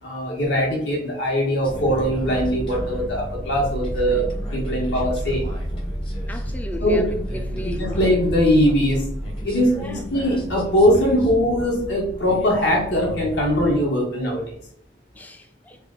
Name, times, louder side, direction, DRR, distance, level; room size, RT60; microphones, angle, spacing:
voice 1, 0.0-4.2 4.5-5.4 6.8-7.0 7.6-9.0 9.4-14.6, equal, 65° left, 1.4 m, -21 dB
sound 1, 1.6-13.8, equal, 30° left, 0.9 m, -31 dB
voice 2, 6.3-7.1 7.3-8.1 9.8-10.0 15.2-15.8, left 1 dB, 10° left, 0.3 m, -35 dB
3.4 x 2.4 x 3.6 m
head